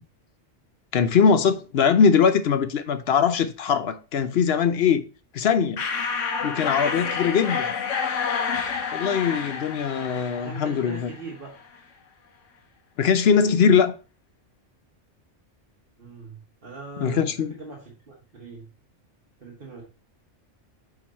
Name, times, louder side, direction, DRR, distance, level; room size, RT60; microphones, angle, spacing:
voice 1, 0.9-5.0 5.3-5.8 6.4-7.7 8.9-11.1 13.0-13.9 17.0-17.5, left 6 dB, 60° left, 0.8 m, -21 dB
sound 1, 5.8-11.3, left 5 dB, 85° left, 1.3 m, -29 dB
voice 2, 10.0-11.5 16.0-18.7 19.4-19.8, right 4 dB, 50° right, 1.5 m, -41 dB
7.3 x 4.0 x 4.1 m
omnidirectional pair, 1.2 m